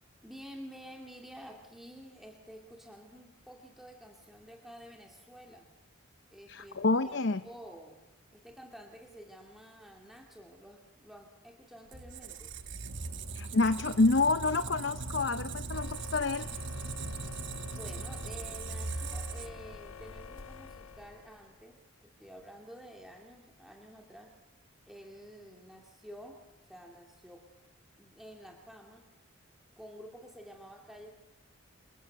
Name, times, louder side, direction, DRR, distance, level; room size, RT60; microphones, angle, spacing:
voice 1, 0.2-5.7 6.3-8.0 8.3-12.5 17.7-24.3 24.8-26.4 26.7-27.4 28.0-29.1 29.8-31.1, equal, ahead, 1 dB, 2.2 m, -50 dB
voice 2, 6.5-7.4 13.3-16.5, left 3 dB, 55° left, 11 dB, 0.7 m, -28 dB
Squeak, 11.9-19.8, right 3 dB, 55° right, 1.3 m, -39 dB
sound 1, 15.7-21.7, left 4 dB, 85° left, 1.2 m, -47 dB
28.0 x 22.0 x 6.5 m, 1.0 s
head